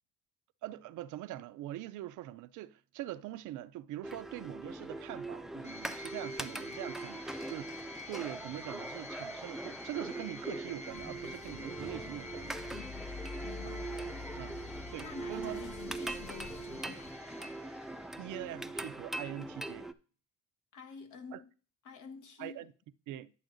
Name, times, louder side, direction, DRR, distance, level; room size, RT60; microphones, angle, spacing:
voice 1, 0.6-12.6 13.6-13.8 14.4-14.6 14.9-15.6 18.2-19.9 21.3-21.4 22.4-22.7 23.1-23.3, right 14 dB, 85° right, 0.5 m, -43 dB
sound 1, 4.0-19.9, right 2 dB, ahead, 0.4 m, -42 dB
sound 2, 5.6-18.5, left 3 dB, 20° left, 1.1 m, -50 dB
sound 3, 10.9-17.1, left 4 dB, 45° left, 1.6 m, -48 dB
voice 2, 12.7-13.1 13.4-13.9 15.0-17.6 20.7-21.5 21.8-22.6, left 6 dB, 80° left, 1.2 m, -49 dB
10.5 x 6.9 x 2.6 m
cardioid pair, 90°, 30 cm